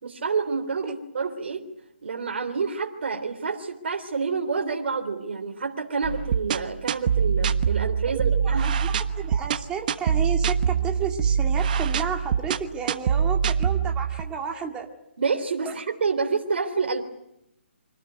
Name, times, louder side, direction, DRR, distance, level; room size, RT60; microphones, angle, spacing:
voice 1, 0.0-1.6 2.0-8.7 15.2-17.0, right 5 dB, 60° right, 3 dB, 3.4 m, -28 dB
sound 1, 6.0-14.2, right 7 dB, 40° right, 1.2 m, -24 dB
voice 2, 8.3-14.9 15.7-15.8, right 6 dB, 15° right, 2 dB, 2.0 m, -32 dB
26.0 x 19.0 x 9.4 m, 0.86 s
hypercardioid pair, 150°, 7 cm